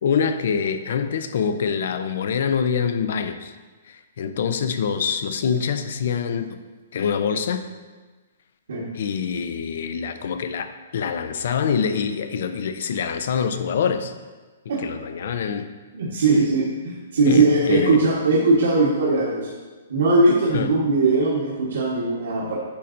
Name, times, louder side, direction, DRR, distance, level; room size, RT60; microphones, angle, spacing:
voice 1, 0.0-3.5 3.9-6.6 6.9-7.6 8.9-14.1 14.8-15.7 17.3-18.0 20.5-20.7, left 6 dB, 50° left, 9 dB, 0.4 m, -25 dB
voice 2, 15.9-19.5 19.9-22.6, right 3 dB, 70° right, -6 dB, 1.2 m, -20 dB
8.5 x 5.4 x 2.5 m, 1.3 s
hypercardioid pair, 175°, 0 cm